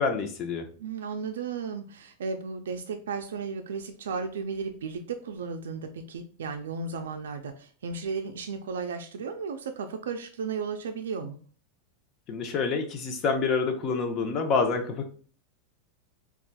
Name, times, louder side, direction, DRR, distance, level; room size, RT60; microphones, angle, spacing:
voice 1, 0.0-0.7 12.3-15.1, left 4 dB, 40° left, 6 dB, 0.7 m, -27 dB
voice 2, 0.8-11.4, right 5 dB, 85° right, 5 dB, 0.3 m, -34 dB
4.0 x 2.4 x 2.2 m, 0.42 s
hypercardioid pair, 110°, 0 cm